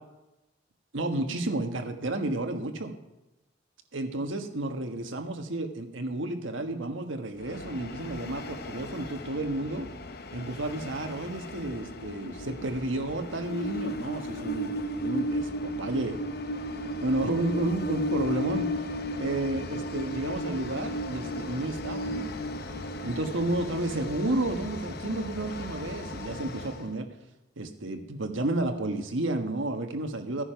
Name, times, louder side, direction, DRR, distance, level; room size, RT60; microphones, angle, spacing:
voice 1, 0.9-2.9 3.9-9.9 10.3-14.7 15.0-16.2 17.0-18.7 19.2-22.3 23.0-27.1 27.6-30.4, right 2 dB, 70° right, 5 dB, 1.4 m, -31 dB
Train, 7.4-26.9, left 1 dB, 50° left, 0.9 m, -35 dB
15.0 x 9.9 x 5.8 m, 0.99 s
head